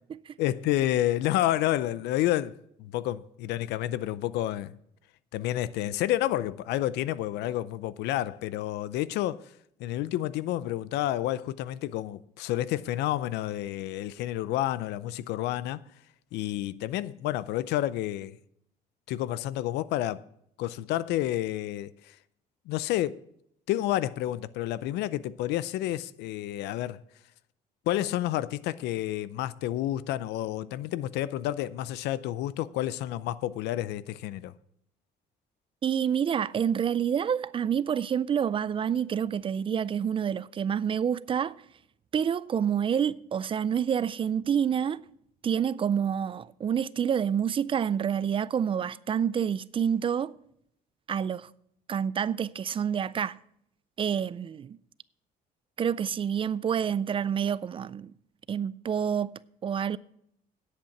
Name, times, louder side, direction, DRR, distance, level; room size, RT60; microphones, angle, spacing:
voice 1, 0.4-4.8 5.3-9.5 9.8-15.8 16.3-18.4 19.1-20.2 20.6-22.2 22.7-23.2 23.7-27.0 27.9-34.5, left 14 dB, 85° left, 0.5 m, -30 dB
voice 2, 35.8-41.6 42.1-45.0 45.4-50.3 51.1-51.5 51.9-53.4 54.0-54.8 55.8-58.1 58.5-60.0, right 8 dB, 30° right, 0.3 m, -28 dB
10.0 x 8.1 x 5.8 m
cardioid pair, 110°, 17 cm